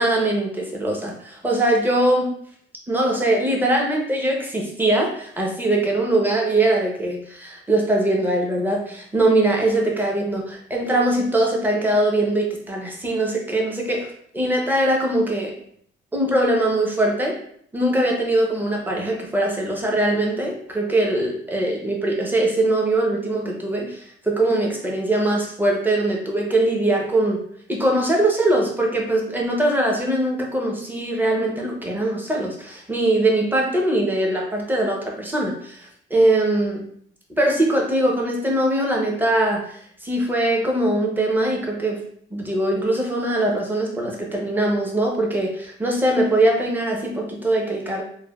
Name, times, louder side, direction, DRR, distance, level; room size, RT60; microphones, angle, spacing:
voice 1, 0.0-2.3 2.9-15.5 16.1-17.4 17.7-27.4 27.7-36.8 37.4-42.0 42.3-48.0, right 1 dB, 10° right, 0 dB, 0.7 m, -21 dB
3.1 x 2.2 x 2.3 m, 0.64 s
cardioid pair, 90°, 20 cm